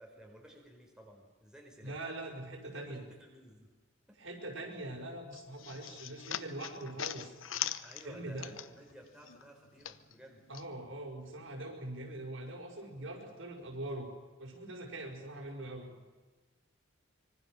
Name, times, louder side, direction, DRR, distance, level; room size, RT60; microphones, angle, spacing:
voice 1, 0.0-2.0 2.7-3.7 4.1-4.2 7.8-10.4 15.9-16.1, right 1 dB, 5° right, -1 dB, 4.4 m, -55 dB
voice 2, 1.8-3.0 4.2-7.3 8.0-8.5 10.5-14.1 14.4-15.9, right 1 dB, 70° right, 1 dB, 5.9 m, -42 dB
sound 1, 5.3-9.0 9.2-10.7, left 10 dB, 70° left, 1.0 m, -41 dB
25.5 x 24.5 x 6.5 m, 1.3 s
head